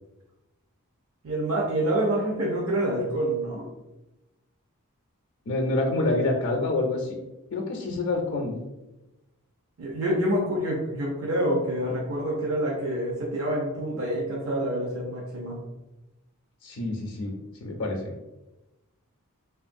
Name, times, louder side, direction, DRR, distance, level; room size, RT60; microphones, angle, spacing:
voice 1, 1.2-3.7 9.8-15.6, right 1 dB, 65° right, -4 dB, 0.6 m, -27 dB
voice 2, 5.5-7.2 7.5-8.6 16.6-17.3 17.6-18.1, left 2 dB, 55° left, 0 dB, 0.5 m, -27 dB
3.0 x 2.4 x 2.5 m, 0.99 s
head